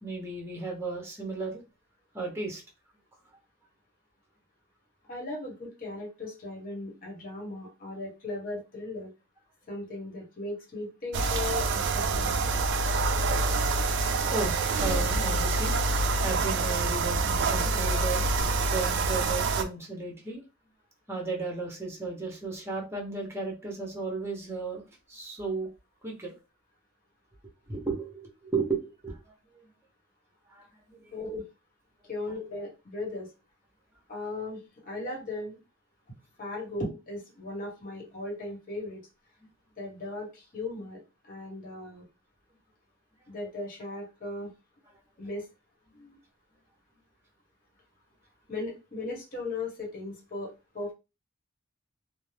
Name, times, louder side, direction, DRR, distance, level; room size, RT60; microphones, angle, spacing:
voice 1, 0.0-1.6 2.1-2.6 14.3-15.8 16.2-18.2 18.7-20.4 21.1-24.8 25.1-25.7 26.0-26.3 27.7-29.1 30.5-30.6, right 3 dB, 15° right, 0 dB, 0.8 m, -34 dB
voice 2, 5.1-9.1 9.7-12.3 31.1-31.4 32.1-33.3 34.1-35.6 36.4-39.1 39.8-42.0 43.3-44.5 45.2-45.5 45.9-46.2 48.5-50.9, left 2 dB, 45° left, 0 dB, 1.2 m, -37 dB
sound 1, 11.1-19.6, right 3 dB, 60° right, 0.4 m, -26 dB
2.6 x 2.0 x 3.2 m, 0.28 s
head